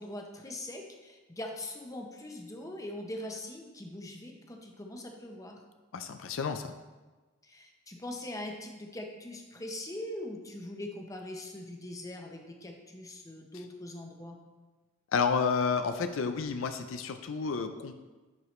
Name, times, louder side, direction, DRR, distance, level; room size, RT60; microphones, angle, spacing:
voice 1, 0.0-5.6 7.4-14.4, left 1 dB, 15° left, 2 dB, 0.8 m, -42 dB
voice 2, 5.9-6.7 15.1-17.9, left 5 dB, 80° left, 8 dB, 0.5 m, -30 dB
10.5 x 4.8 x 3.2 m, 1.3 s
head